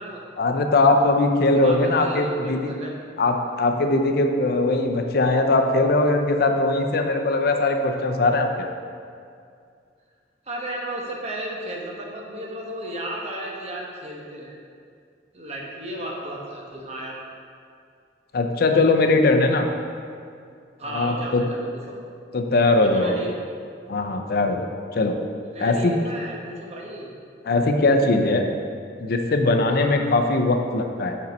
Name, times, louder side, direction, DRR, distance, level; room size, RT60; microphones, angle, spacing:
voice 1, 0.4-2.7 3.2-8.7 18.3-19.7 20.9-21.4 22.3-23.2 23.9-24.7 24.9-25.1 25.6-25.9 27.5-28.4 29.0-31.1, left 2 dB, 60° left, 5 dB, 0.5 m, -20 dB
voice 2, 1.5-3.0 10.5-14.6 15.3-17.2 20.8-21.6 21.9-22.0 22.8-23.3 25.5-27.1 29.7-29.9, right 1 dB, 40° right, -1 dB, 1.0 m, -34 dB
5.4 x 5.3 x 5.3 m, 2.3 s
head